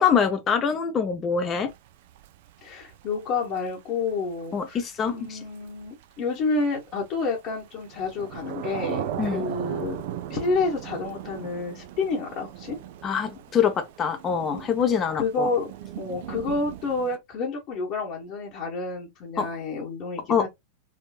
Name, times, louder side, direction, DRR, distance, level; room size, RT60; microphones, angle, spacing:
voice 1, 0.0-1.7 4.5-5.4 9.2-9.4 13.0-15.5 19.4-19.5 20.3-20.5, left 7 dB, 25° left, 0.7 m, -24 dB
Thunder / Rain, 1.7-17.2, right 10 dB, 50° right, 0.4 m, -38 dB
voice 2, 2.6-4.8 5.1-9.1 9.3-10.0 10.3-12.8 15.1-15.7 16.0-20.5, left 4 dB, 40° left, 1.1 m, -29 dB
3.5 x 3.0 x 2.4 m
figure-of-eight pair, 90°, 0 cm